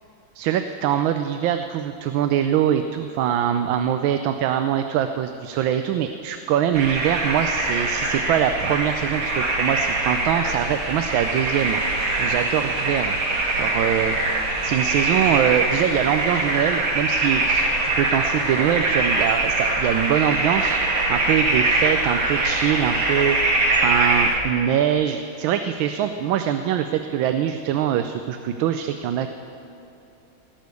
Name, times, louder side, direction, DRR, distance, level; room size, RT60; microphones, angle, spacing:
voice 1, 0.3-11.8 12.2-13.2 13.5-14.2 14.6-20.8 21.1-23.4 23.8-29.3, right 10 dB, 85° right, 8 dB, 1.4 m, -23 dB
sound 1, 6.7-24.4, right 2 dB, 55° right, 2.3 m, -23 dB
18.0 x 6.4 x 8.2 m, 2.9 s
omnidirectional pair, 2.1 m